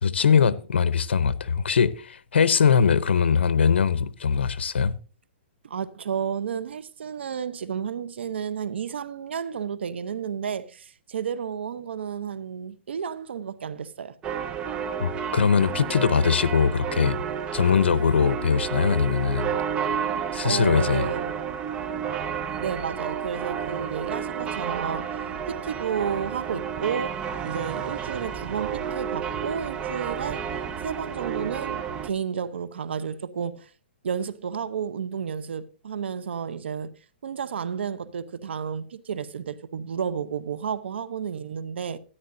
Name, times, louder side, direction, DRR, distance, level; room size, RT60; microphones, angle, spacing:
voice 1, 0.0-4.9 15.0-17.2 17.5-19.5 20.3-21.1, left 6 dB, 85° left, 0.7 m, -21 dB
voice 2, 5.6-14.2 20.4-21.4 22.6-25.2 25.5-30.4 30.8-33.7 34.0-36.9 37.2-42.0, right 7 dB, 80° right, 0.8 m, -32 dB
sound 1, 14.2-32.1, right 7 dB, 15° right, 0.6 m, -31 dB
13.0 x 10.5 x 2.6 m
hypercardioid pair, 150°, 6 cm